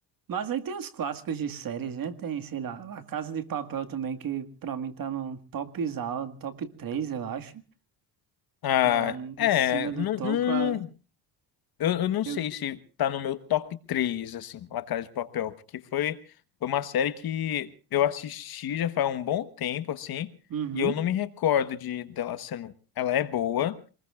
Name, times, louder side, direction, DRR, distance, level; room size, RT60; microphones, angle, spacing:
voice 1, 0.3-7.5 8.8-10.8 12.3-12.5 20.5-20.9, right 8 dB, 50° right, 2.0 m, -33 dB
voice 2, 8.6-10.9 11.8-15.5 15.9-16.2 16.6-20.3 20.7-23.8, left 11 dB, 55° left, 1.4 m, -28 dB
27.0 x 20.5 x 2.5 m
cardioid pair, 95°, 43 cm